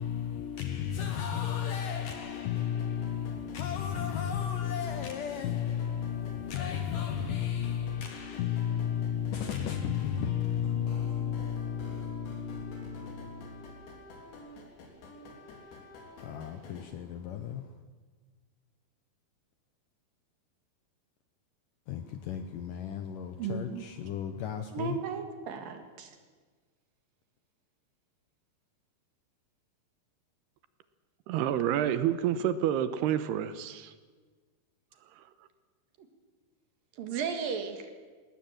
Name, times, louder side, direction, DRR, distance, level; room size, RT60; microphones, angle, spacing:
voice 1, 0.0-13.8 16.2-17.7 21.9-25.0, left 9 dB, 70° left, 2.1 m, -33 dB
sound 1, 2.1-16.9, left 2 dB, 90° left, 5.5 m, -49 dB
voice 2, 23.4-23.8 24.7-26.2 37.0-37.9, right 6 dB, 60° right, 3.3 m, -35 dB
voice 3, 31.3-33.9, right 10 dB, 80° right, 2.8 m, -28 dB
20.5 x 18.5 x 9.0 m
omnidirectional pair, 4.9 m